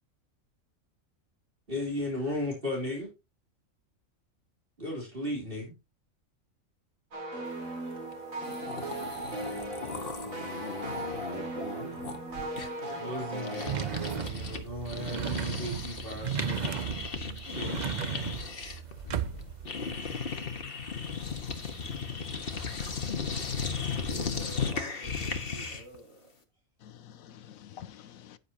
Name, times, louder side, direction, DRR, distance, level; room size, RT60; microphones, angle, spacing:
voice 1, 1.7-3.1 4.8-5.7 12.9-17.8, left 1 dB, 40° right, 3.8 m, -36 dB
sound 1, 7.1-14.3, right 2 dB, 80° right, 3.0 m, -37 dB
sound 2, 8.1-8.2 8.4-14.6 14.9-26.0, left 5 dB, 45° left, 1.6 m, -36 dB
sound 3, 13.7-19.7, right 9 dB, 55° right, 0.5 m, -35 dB
voice 2, 21.2-22.2 23.0-23.1 26.8-28.4, left 10 dB, 85° left, 1.2 m, -49 dB
voice 3, 24.1-26.3, right 2 dB, 20° right, 7.8 m, -47 dB
11.0 x 9.7 x 2.9 m
omnidirectional pair, 1.4 m